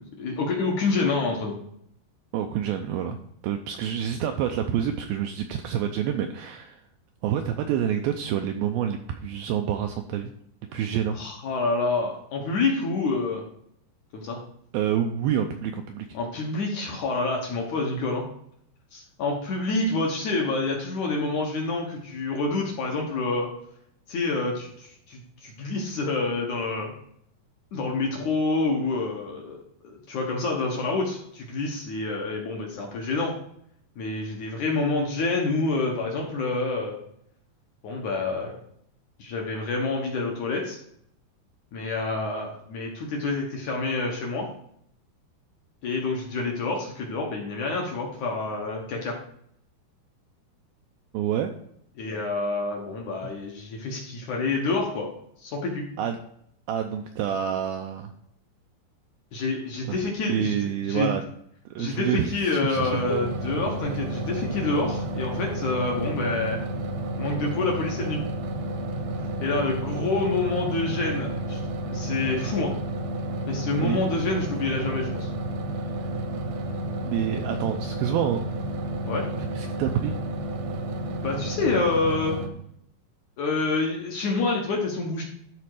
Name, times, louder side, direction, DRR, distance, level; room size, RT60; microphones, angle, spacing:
voice 1, 0.0-1.5 11.2-13.4 14.1-14.4 16.1-18.2 18.9-23.5 24.1-26.9 27.7-29.6 29.8-33.3 34.0-37.0 37.8-38.6 39.2-40.8 41.7-44.5 45.8-49.2 52.0-55.1 55.4-55.9 59.3-60.5 60.8-61.1 61.8-66.6 67.2-68.2 69.4-71.6 71.9-72.7 73.5-75.3 79.1-79.3 81.2-82.4 83.4-85.2, left 3 dB, 65° left, 0 dB, 2.1 m, -27 dB
voice 2, 2.3-3.2 3.4-6.8 7.2-10.3 10.7-11.2 14.7-16.1 51.1-51.5 53.2-53.3 56.0-56.2 56.7-58.1 60.3-61.3 61.7-63.2 73.8-74.0 76.0-76.1 77.0-78.4 79.6-80.2, right 9 dB, 85° right, 5 dB, 2.1 m, -27 dB
sound 1, 62.7-82.5, right 1 dB, 70° right, 2.0 m, -31 dB
12.5 x 4.3 x 4.9 m, 0.69 s
omnidirectional pair, 4.9 m